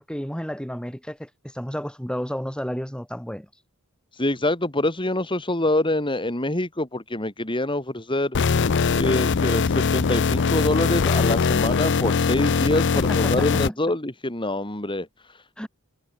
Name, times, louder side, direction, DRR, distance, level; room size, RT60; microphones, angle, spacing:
voice 1, 0.0-3.5 12.9-13.8 15.6-15.7, equal, 5° left, 6.0 m, -32 dB
voice 2, 4.1-8.4 8.9-15.7, left 1 dB, 20° left, 3.1 m, -25 dB
sound 1, 8.3-13.7, left 5 dB, 55° left, 0.5 m, -21 dB
head